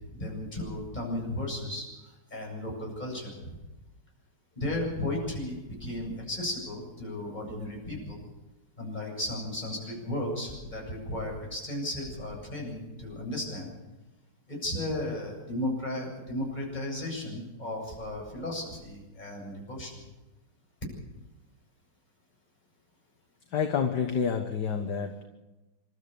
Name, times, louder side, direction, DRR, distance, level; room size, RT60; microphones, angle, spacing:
voice 1, 0.1-3.6 4.6-8.2 8.8-13.7 14.5-20.0, left 1 dB, 20° left, -2 dB, 8.0 m, -35 dB
voice 2, 23.5-25.2, left 6 dB, 55° left, 4 dB, 1.8 m, -28 dB
28.5 x 13.0 x 6.9 m, 1.1 s
omnidirectional pair, 2.3 m